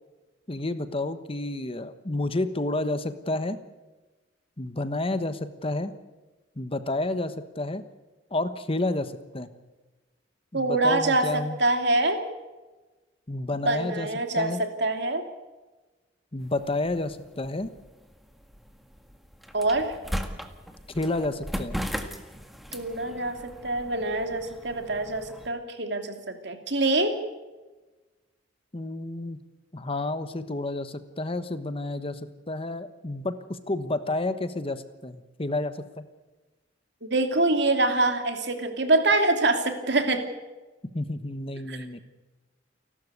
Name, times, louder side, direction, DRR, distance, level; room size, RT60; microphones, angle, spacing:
voice 1, 0.5-3.6 4.6-5.9 6.6-7.8 8.3-9.5 10.5-11.6 13.3-14.1 14.4-14.6 16.3-17.7 20.9-21.8 28.7-29.4 29.7-36.1 40.9-42.0, left 2 dB, 30° left, 11 dB, 1.2 m, -30 dB
voice 2, 10.5-12.2 13.7-15.2 19.5-19.9 22.7-27.2 37.0-40.2 41.7-41.8, right 2 dB, 65° right, 6 dB, 2.8 m, -25 dB
sound 1, 16.4-25.5, equal, ahead, 1.8 m, -38 dB
29.5 x 12.5 x 8.2 m, 1.2 s
head